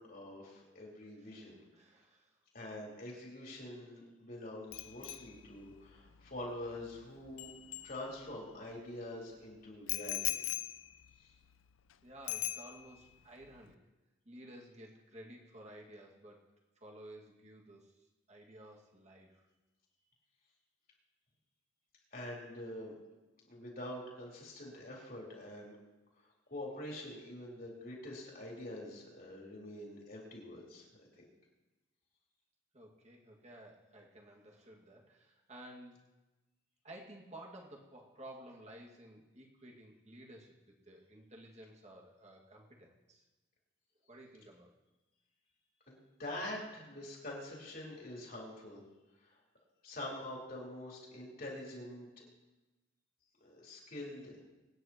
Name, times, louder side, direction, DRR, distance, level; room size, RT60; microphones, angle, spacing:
voice 1, 0.0-1.6 2.5-7.5 7.8-10.5 11.2-11.3 22.1-22.9 23.5-25.8 26.5-30.8 31.2-31.3 45.9-46.0 46.2-48.8 49.2-49.4 49.8-52.2 53.4-54.4, left 1 dB, 45° left, -3 dB, 3.8 m, -45 dB
voice 2, 1.2-2.4 12.0-13.8 14.3-16.4 16.8-19.5 32.7-36.0 36.8-43.3 44.1-44.7, right 1 dB, 35° right, -1 dB, 2.1 m, -54 dB
Bicycle bell, 4.7-8.5 9.9-11.9 12.3-13.1 13.4-13.7, left 15 dB, 80° left, 0.5 m, -42 dB
25.0 x 9.9 x 3.0 m, 1.1 s
head